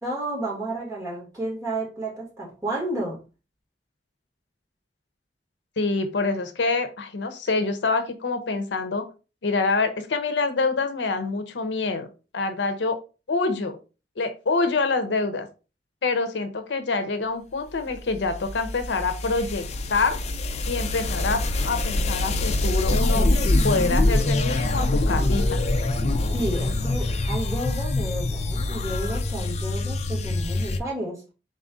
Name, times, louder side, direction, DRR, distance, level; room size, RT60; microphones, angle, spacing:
voice 1, 0.0-3.2 26.3-31.2, right 1 dB, 20° right, -2 dB, 1.6 m, -31 dB
voice 2, 5.8-9.0 9.4-12.1 12.3-13.0 13.3-13.8 14.2-15.5 16.0-19.6 19.9-20.2 20.7-23.3 23.6-25.6, left 3 dB, 80° left, 8 dB, 0.6 m, -26 dB
sound 1, 17.9-30.8, left 2 dB, 40° left, 0.4 m, -24 dB
4.1 x 2.5 x 3.6 m, 0.32 s
head